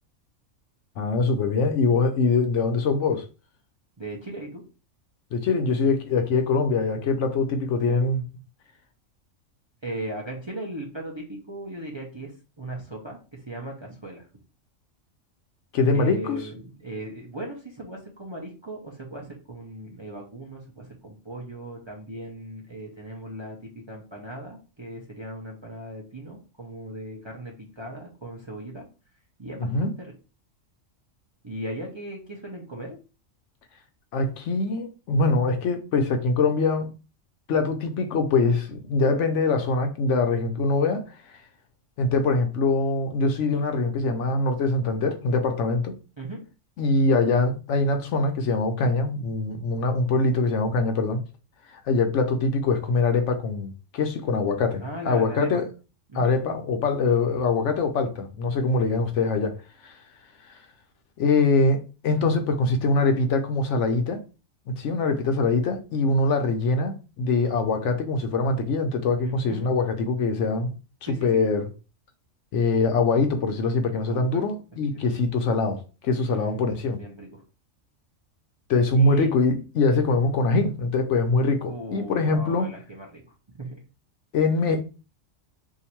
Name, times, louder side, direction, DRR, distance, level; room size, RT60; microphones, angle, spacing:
voice 1, 1.0-3.3 5.3-8.3 15.7-16.4 29.7-29.9 34.1-36.9 37.5-41.4 42.0-46.0 46.8-51.2 51.7-55.7 56.1-59.6 59.8-60.0 61.2-64.2 64.7-70.7 71.2-71.7 72.5-77.0 78.7-82.7 84.3-84.8, left 3 dB, 70° left, 0.9 m, -23 dB
voice 2, 4.0-4.6 9.8-12.3 12.6-14.3 15.9-28.8 29.4-30.1 31.4-33.0 46.2-46.4 54.8-55.6 56.1-56.3 69.2-69.7 71.0-71.4 74.1-74.4 76.2-77.4 78.9-79.4 81.7-83.2 83.6-83.8, right 1 dB, 30° right, 0.6 m, -38 dB
2.8 x 2.5 x 4.3 m
omnidirectional pair, 1.3 m